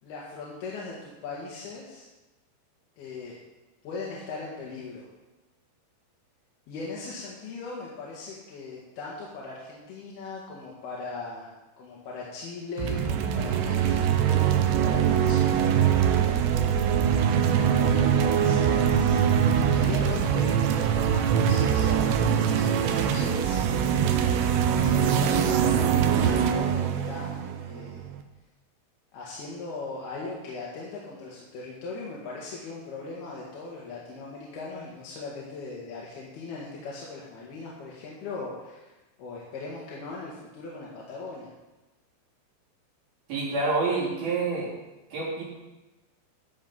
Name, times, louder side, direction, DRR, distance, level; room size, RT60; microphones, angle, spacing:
voice 1, 0.0-2.1 3.0-3.4 3.8-5.1 6.7-16.0 17.1-17.3 17.6-22.2 22.6-23.9 24.8-28.0 29.1-38.9 39.2-41.5, left 3 dB, 65° left, -5 dB, 3.6 m, -39 dB
sound 1, 12.8-28.2, right 8 dB, 80° right, 2.9 m, -23 dB
voice 2, 43.3-44.7 45.1-45.4, right 3 dB, 55° right, -7 dB, 5.3 m, -27 dB
13.5 x 8.1 x 5.5 m, 1.1 s
omnidirectional pair, 5.2 m